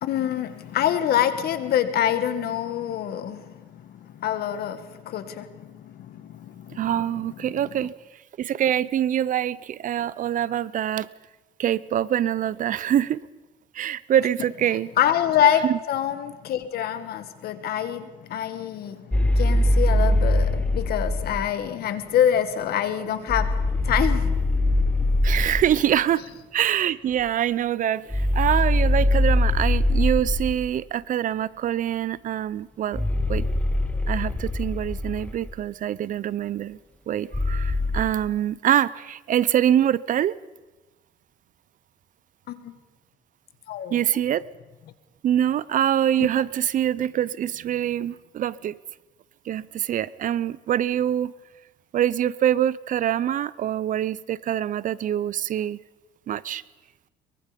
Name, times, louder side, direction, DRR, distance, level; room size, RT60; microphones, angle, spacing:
voice 1, 0.0-6.9 7.5-7.6 15.0-25.3 42.5-42.7 43.7-44.0, left 10 dB, 70° left, 10 dB, 1.9 m, -26 dB
voice 2, 6.8-7.9 8.4-11.1 11.6-13.3 13.7-14.9 15.6-15.8 25.2-26.2 26.5-33.5 34.1-36.8 37.1-40.4 43.9-44.4 45.2-48.8 49.5-51.3 51.9-55.8 56.3-56.6, right 10 dB, 50° right, 21 dB, 0.6 m, -24 dB
sound 1, 19.1-21.4 23.3-25.8 28.1-30.7 32.9-35.5 37.3-38.0, left 1 dB, 10° left, 1.2 m, -22 dB
23.0 x 23.0 x 5.2 m, 1.1 s
cardioid pair, 110°, 17 cm